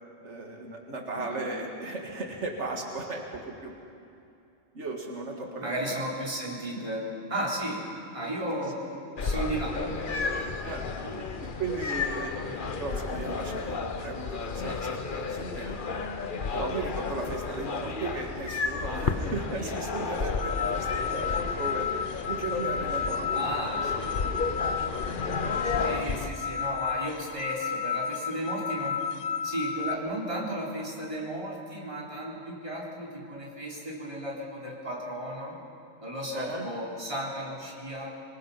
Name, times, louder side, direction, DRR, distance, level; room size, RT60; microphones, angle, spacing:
voice 1, 0.2-3.7 4.7-6.0 6.7-6.9 8.5-8.7 10.6-10.9 11.4-12.3 12.8-15.9 16.5-21.9 22.3-23.6 24.2-24.3 25.4-25.6 36.3-36.7, right 3 dB, 90° right, 1 dB, 2.1 m, -36 dB
voice 2, 1.1-1.6 5.6-7.8 8.1-8.7 9.2-10.0 10.5-10.6 11.0-11.3 12.5-12.6 17.5-17.6 23.3-24.2 25.8-29.0 29.4-35.6 36.0-38.1, right 1 dB, 25° right, -4 dB, 3.9 m, -34 dB
sound 1, 9.2-26.3, left 4 dB, 50° left, 1.1 m, -32 dB
sound 2, 20.2-30.0, left 7 dB, 85° left, 1.1 m, -32 dB
25.5 x 20.5 x 5.7 m, 2.6 s
omnidirectional pair, 1.2 m